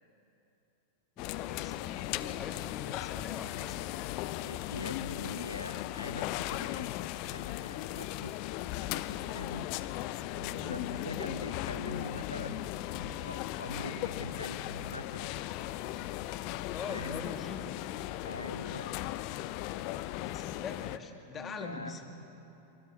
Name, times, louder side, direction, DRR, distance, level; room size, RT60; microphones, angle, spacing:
sound 1, 1.2-21.0, left 15 dB, 45° left, 0.7 m, -37 dB
voice 1, 1.2-3.8 10.9-11.3 16.7-17.6 20.2-22.0, left 5 dB, 25° left, 4 dB, 2.6 m, -43 dB
voice 2, 4.4-8.4 8.8-9.7 10.6-12.8 13.3-14.6 14.9-15.3 16.9-17.2 18.2-19.0 21.3-21.9, left 1 dB, 85° left, 12 dB, 0.6 m, -43 dB
sound 2, 10.3-11.4 11.8-12.1 12.4-12.7 12.9-16.2, equal, 80° right, 2.1 m, -49 dB
24.0 x 21.5 x 7.2 m, 2.9 s
figure-of-eight pair, 90°, 0 cm